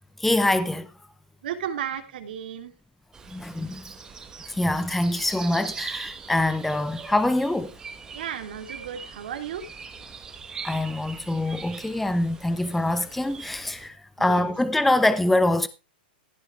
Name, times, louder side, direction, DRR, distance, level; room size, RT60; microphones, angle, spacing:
voice 1, 0.2-0.9 3.3-3.8 4.5-7.7 10.6-15.7, left 1 dB, 5° left, 0.6 m, -24 dB
voice 2, 1.4-2.7 8.1-9.6 14.2-14.5, right 9 dB, 70° right, 2.9 m, -34 dB
sound 1, 3.1-13.9, right 5 dB, 10° right, 1.4 m, -41 dB
16.0 x 6.2 x 4.7 m
supercardioid pair, 155°, 5 cm